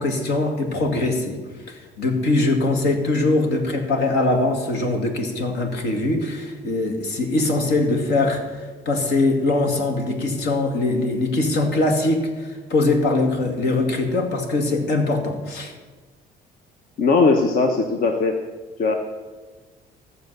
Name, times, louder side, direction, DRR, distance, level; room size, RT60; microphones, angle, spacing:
voice 1, 0.0-1.4 1.7-15.7, left 2 dB, 80° left, 4 dB, 2.2 m, -22 dB
voice 2, 17.0-18.4 18.8-18.9, left 4 dB, 60° left, 4 dB, 1.1 m, -19 dB
15.0 x 7.0 x 6.7 m, 1.4 s
cardioid pair, 110°, 17 cm